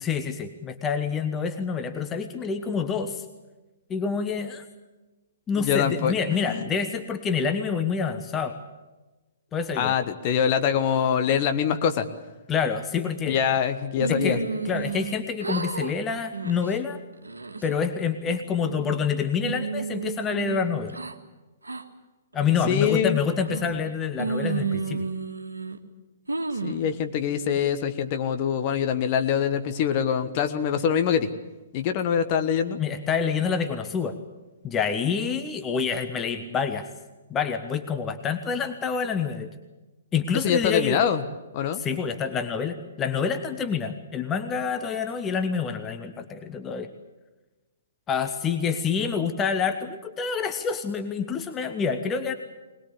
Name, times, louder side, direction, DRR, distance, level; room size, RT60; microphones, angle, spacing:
voice 1, 0.0-3.2 3.9-4.6 5.5-8.6 9.5-10.0 12.5-13.6 14.1-17.0 17.6-21.0 22.3-25.1 32.8-34.2 34.6-36.9 37.3-39.5 40.1-41.0 41.7-46.9 48.1-52.3, left 6 dB, 15° left, 8 dB, 1.2 m, -27 dB
voice 2, 5.6-6.7 9.8-12.1 13.3-14.4 22.7-23.2 26.6-31.3 31.7-32.8 40.4-41.2 41.5-41.8, left 8 dB, 35° left, 8 dB, 1.4 m, -24 dB
sound 1, 14.0-15.1 15.4-15.9 16.3-16.7 17.2-17.7 18.3-19.0 19.4-21.1 21.6-21.8 22.4-22.8 23.4-23.9 24.2-25.8 26.3-26.9, right 4 dB, 75° right, 1.7 m, -31 dB
21.0 x 21.0 x 8.4 m, 1.1 s
figure-of-eight pair, 120°, 0 cm